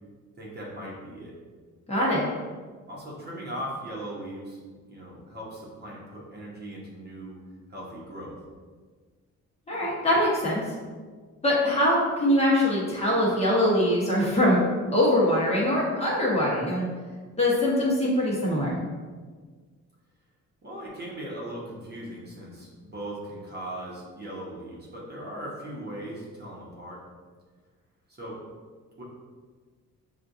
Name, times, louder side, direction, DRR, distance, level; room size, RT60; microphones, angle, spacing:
voice 1, 0.4-1.3 2.9-4.6 4.9-7.4 7.7-8.4 20.6-27.0 28.1-28.4 29.0-29.1, right 1 dB, 30° right, -5 dB, 1.0 m, -39 dB
voice 2, 1.9-2.2 9.7-10.6 11.4-14.6 14.9-16.9 17.4-18.8, left 1 dB, 20° left, -6 dB, 1.1 m, -23 dB
6.1 x 2.4 x 2.6 m, 1.5 s
cardioid pair, 130°, 31 cm